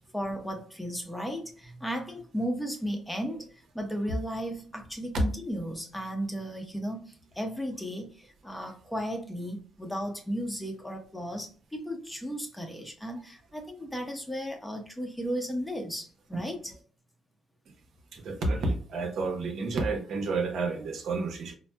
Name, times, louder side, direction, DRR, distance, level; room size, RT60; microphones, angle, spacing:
voice 1, 0.1-3.5 3.7-16.7, equal, 10° left, 3 dB, 0.7 m, -35 dB
voice 2, 18.1-21.5, right 3 dB, 70° right, 3 dB, 0.7 m, -30 dB
4.0 x 2.0 x 2.2 m, 0.40 s
cardioid pair, 90°, 0 cm